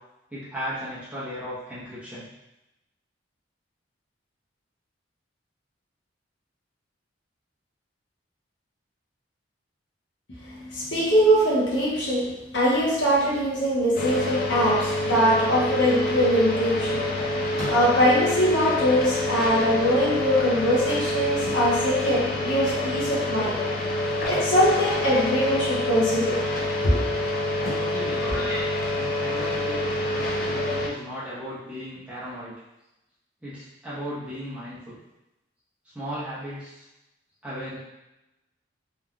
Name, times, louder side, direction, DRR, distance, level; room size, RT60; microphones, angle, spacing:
voice 1, 0.3-2.3 27.8-28.4 28.9-32.5 33.4-35.0 35.9-36.9 37.4-37.8, equal, 5° right, -10 dB, 0.8 m, -36 dB
voice 2, 10.4-23.6 24.3-26.4 26.8-27.0 28.2-28.6, equal, 65° left, -5 dB, 0.8 m, -22 dB
sound 1, 13.9-30.9, left 1 dB, 50° left, 0.4 m, -27 dB
sound 2, 17.6-18.3 19.2-19.3 19.5-19.6 20.9-22.1 24.1-25.4 25.7-26.0 26.5-27.1 27.5-29.3 31.3-31.4 31.8-31.9, left 1 dB, 20° left, 1.1 m, -40 dB
3.1 x 2.2 x 2.4 m, 0.93 s
head